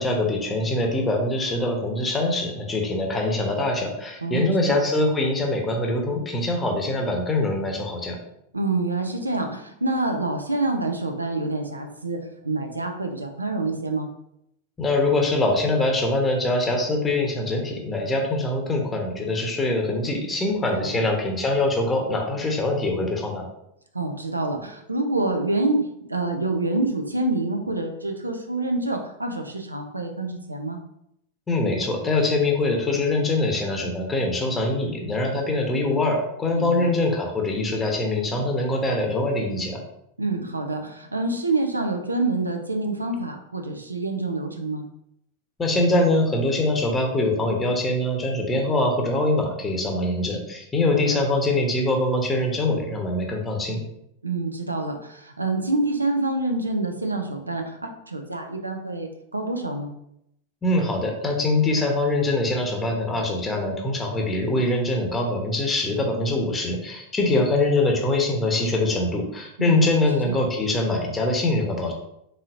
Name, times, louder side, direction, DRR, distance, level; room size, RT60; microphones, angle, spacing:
voice 1, 0.0-8.2 14.8-23.5 31.5-39.8 45.6-53.8 60.6-71.9, left 2 dB, 15° left, 2 dB, 0.9 m, -23 dB
voice 2, 4.2-4.8 8.5-14.1 20.8-21.0 23.9-30.8 36.5-36.9 40.2-44.8 50.9-51.2 54.2-59.9 69.6-70.4, right 2 dB, 80° right, 4 dB, 0.5 m, -27 dB
4.2 x 3.7 x 2.5 m, 0.77 s
figure-of-eight pair, 90°, 0 cm